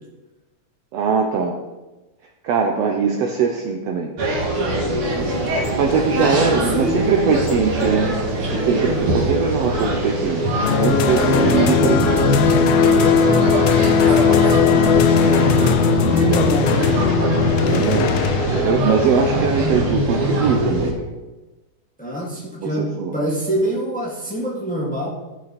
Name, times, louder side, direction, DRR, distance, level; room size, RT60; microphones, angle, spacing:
voice 1, 0.9-1.6 2.4-4.1 5.1-12.3 17.6-20.9 22.6-23.1, right 5 dB, 85° right, 3 dB, 1.4 m, -22 dB
sound 1, 4.2-20.9, right 1 dB, 50° right, 2.4 m, -22 dB
sound 2, 5.0-17.1, left 2 dB, 50° left, 1.4 m, -34 dB
voice 2, 5.3-7.0 14.1-17.1 22.0-25.1, equal, 5° left, -4 dB, 1.8 m, -26 dB
sound 3, 10.6-18.9, left 7 dB, 90° left, 2.4 m, -18 dB
16.0 x 6.2 x 4.3 m, 1.1 s
omnidirectional pair, 3.9 m